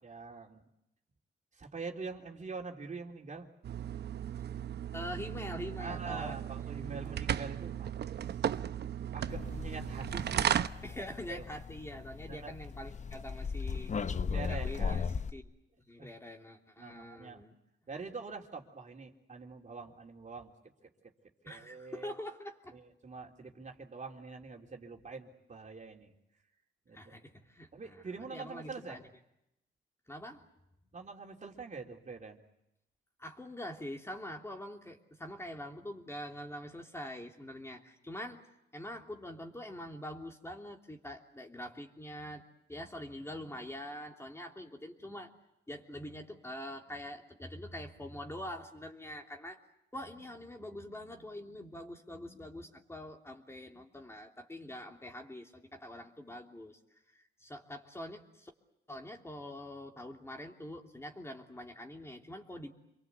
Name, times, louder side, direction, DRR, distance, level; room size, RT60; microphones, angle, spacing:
voice 1, 0.0-0.6 1.6-3.5 5.8-7.9 9.1-11.4 12.3-12.5 14.3-15.1 16.0-16.1 16.8-17.4 17.9-20.5 21.4-22.1 22.7-26.1 26.9-27.2 27.7-29.0 30.9-32.4, right 4 dB, 40° right, 1 dB, 3.5 m, -45 dB
sound 1, 3.6-10.7, right 9 dB, 65° right, 0.9 m, -35 dB
voice 2, 4.9-7.1 10.8-14.0 14.5-15.0 15.3-15.4 15.8-17.5 21.4-22.8 26.9-29.0 30.1-30.4 33.2-38.4 38.7-45.3 45.7-49.6 49.9-56.8 57.1-58.5 58.9-62.7, left 1 dB, 15° left, 2 dB, 3.2 m, -44 dB
sound 2, 9.3-15.3, left 5 dB, 40° left, 1.0 m, -37 dB
27.5 x 23.0 x 8.3 m, 0.84 s
cardioid pair, 85°, 19 cm